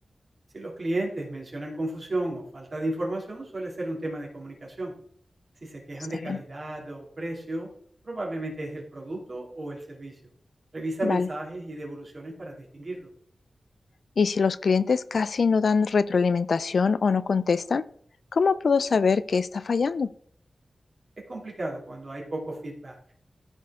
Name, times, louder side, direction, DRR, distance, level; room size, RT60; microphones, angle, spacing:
voice 1, 0.5-4.9 5.6-7.7 8.0-10.2 10.7-13.1 21.3-23.0, right 1 dB, 45° right, -1 dB, 2.7 m, -33 dB
voice 2, 14.2-17.8 18.3-20.1, left 5 dB, 70° left, 16 dB, 0.3 m, -23 dB
13.5 x 4.5 x 3.6 m, 0.63 s
wide cardioid pair, 105°, 0 cm